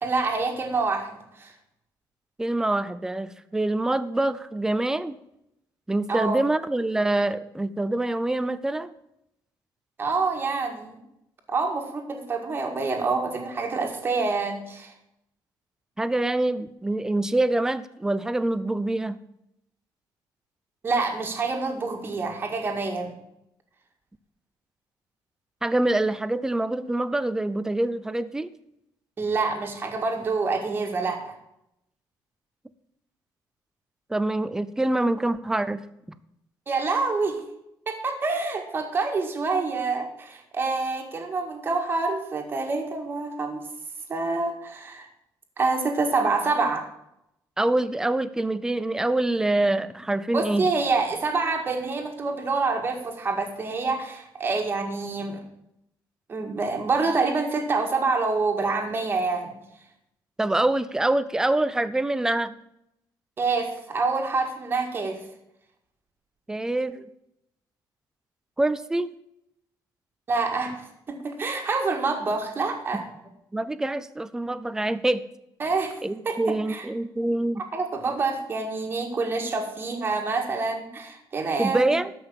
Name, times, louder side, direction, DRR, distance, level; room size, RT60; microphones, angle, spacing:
voice 1, 0.0-1.5 6.1-6.4 10.0-11.0 11.5-14.9 20.8-23.1 29.2-31.3 36.7-37.4 37.9-43.6 44.1-45.1 45.6-46.9 50.3-55.4 56.3-59.5 63.4-65.2 70.3-73.0 75.6-75.9 76.3-76.4 76.7-76.8 77.7-81.9, right 3 dB, 25° right, 3 dB, 1.9 m, -27 dB
voice 2, 2.4-5.2 5.9-8.9 16.0-19.2 25.6-28.5 34.1-35.8 47.6-50.7 60.4-62.5 66.5-67.1 68.6-69.1 72.9-73.0 73.5-75.3 76.0-77.6 81.6-82.1, right 2 dB, 5° right, 14 dB, 0.5 m, -25 dB
12.5 x 5.5 x 7.5 m, 0.81 s
cardioid pair, 160°, 8 cm